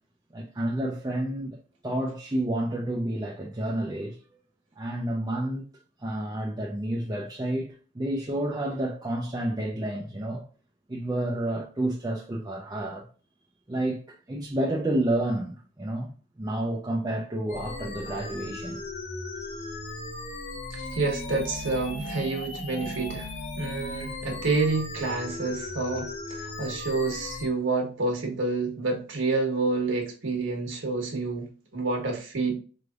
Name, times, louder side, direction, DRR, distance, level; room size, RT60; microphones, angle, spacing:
voice 1, 0.3-1.6 1.8-4.2 4.8-5.6 6.0-10.4 10.9-13.1 13.7-16.1 16.4-18.8, right 1 dB, 20° right, 0.5 m, -30 dB
sound 1, 17.5-27.5, left 2 dB, 35° left, 0.7 m, -37 dB
voice 2, 20.7-23.3 23.6-32.6, right 3 dB, 75° right, 1.3 m, -28 dB
4.7 x 3.3 x 2.4 m
head